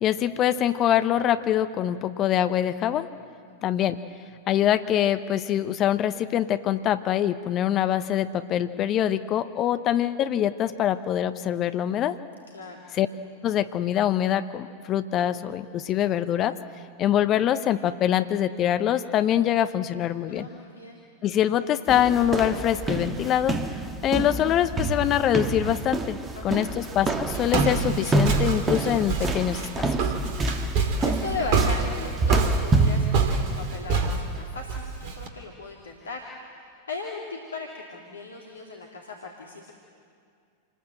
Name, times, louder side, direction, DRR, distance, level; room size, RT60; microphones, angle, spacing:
voice 1, 0.0-3.1 3.6-4.0 4.5-12.2 12.9-13.1 13.4-16.6 17.0-20.5 21.2-26.2 26.4-30.1, left 11 dB, 35° left, 11 dB, 0.9 m, -24 dB
voice 2, 3.4-3.8 12.5-12.8 20.3-21.0 26.3-26.8 31.0-39.7, left 3 dB, 70° left, 0 dB, 2.5 m, -38 dB
sound 1, 21.9-33.1, right 3 dB, 20° right, 1.8 m, -27 dB
Walk footsteps, 26.7-35.3, right 4 dB, 45° right, 2.7 m, -27 dB
27.5 x 20.0 x 7.9 m, 2.3 s
figure-of-eight pair, 90°, 0 cm